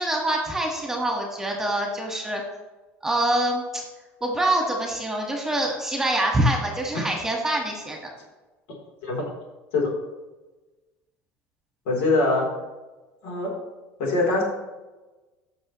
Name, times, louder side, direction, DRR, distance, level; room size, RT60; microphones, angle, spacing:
voice 1, 0.0-2.4 3.0-3.8 4.2-8.0, right 1 dB, 5° right, 0 dB, 1.6 m, -25 dB
voice 2, 11.9-12.5 13.2-13.5 14.0-14.4, left 2 dB, 85° left, -1 dB, 3.5 m, -22 dB
14.5 x 6.3 x 3.1 m, 1.2 s
cardioid pair, 145°, 6 cm